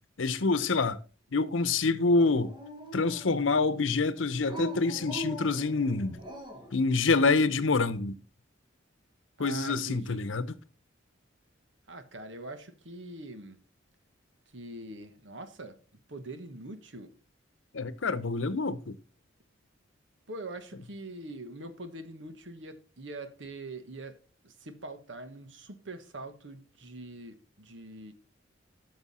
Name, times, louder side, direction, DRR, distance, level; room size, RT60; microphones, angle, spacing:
voice 1, 0.2-1.0 1.3-2.5 2.9-6.2 6.7-8.2 9.4-10.5 17.7-19.0, left 3 dB, 90° left, 0.8 m, -26 dB
Dog, 2.1-3.6 4.4-6.8, equal, 25° right, 1.7 m, -41 dB
voice 2, 9.4-10.4 11.9-13.6 14.5-15.8 16.1-17.1 20.3-28.1, right 2 dB, 70° right, 1.4 m, -43 dB
12.5 x 6.3 x 4.2 m
head